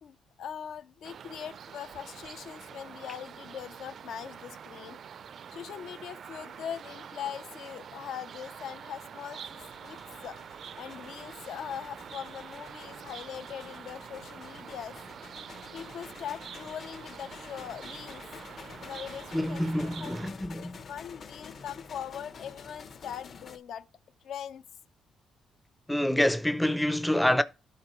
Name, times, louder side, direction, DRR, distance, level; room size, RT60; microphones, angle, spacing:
voice 1, 0.0-5.0 5.5-10.4 10.8-15.0 15.7-18.2 18.8-20.2 20.6-23.9 24.2-24.6, left 9 dB, 75° left, 0.6 m, -41 dB
sound 1, 1.0-20.3, right 7 dB, 55° right, 0.4 m, -46 dB
sound 2, 9.4-23.6, left 5 dB, 50° left, 0.8 m, -49 dB
voice 2, 19.3-20.8 25.9-27.4, left 1 dB, 5° left, 0.5 m, -27 dB
12.0 x 4.2 x 3.1 m
cardioid pair, 105°, 0 cm